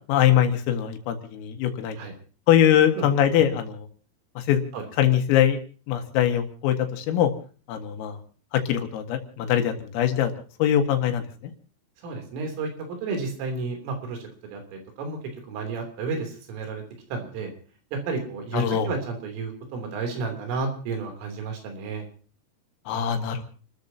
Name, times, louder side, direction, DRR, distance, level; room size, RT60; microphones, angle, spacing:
voice 1, 0.1-2.0 2.5-3.9 4.5-4.6 5.0-5.6 5.9-7.3 7.7-8.2 8.7-10.3 10.6-11.2 18.5-18.9 22.9-23.4, left 10 dB, 85° left, 6 dB, 4.3 m, -22 dB
voice 2, 12.0-12.7 13.0-14.2 14.5-15.2 15.5-16.8 17.1-17.5 18.1-22.0, right 4 dB, 75° right, 3 dB, 5.8 m, -31 dB
30.0 x 13.5 x 2.9 m, 0.38 s
omnidirectional pair, 5.9 m